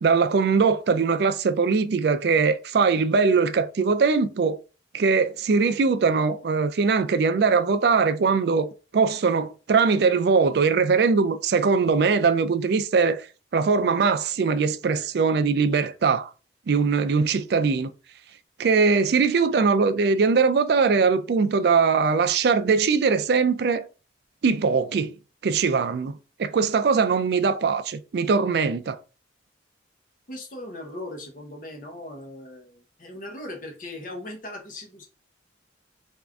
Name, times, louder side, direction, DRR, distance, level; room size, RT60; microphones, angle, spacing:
voice 1, 0.0-4.6 4.9-13.2 13.5-16.3 16.7-17.9 18.6-23.9 24.4-25.1 25.4-29.0, right 5 dB, 60° right, 0.3 m, -21 dB
voice 2, 30.3-35.1, left 1 dB, 45° left, 0.8 m, -38 dB
3.6 x 2.5 x 3.4 m
head